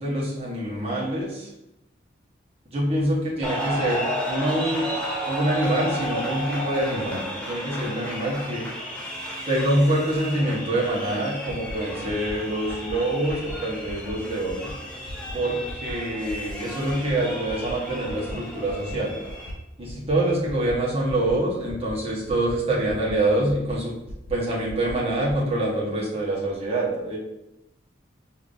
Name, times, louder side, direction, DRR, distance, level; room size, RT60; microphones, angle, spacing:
voice 1, 0.0-1.5 2.7-4.9 5.3-8.7 9.5-14.7 15.3-19.2 19.8-23.9 24.3-27.2, right 1 dB, 30° right, -5 dB, 1.0 m, -25 dB
sound 1, 3.4-19.5, equal, 5° left, 0.6 m, -33 dB
sound 2, 11.5-11.7 12.1-12.3 12.7-12.9 13.3-13.5 13.9-14.1 14.5-14.7 15.1-15.3 15.7-15.9 16.3-16.5 16.9-17.1 17.5-17.7 18.1-18.3 18.7-18.9 19.3-19.5 19.9-20.1 20.5-20.7 21.1-21.3 21.7-21.9 22.3-22.5 22.9-23.1 23.5-23.7 24.1-24.3 24.7-24.9 25.3-25.4, equal, 65° left, 1.1 m, -39 dB
5.1 x 2.7 x 2.5 m, 0.89 s
head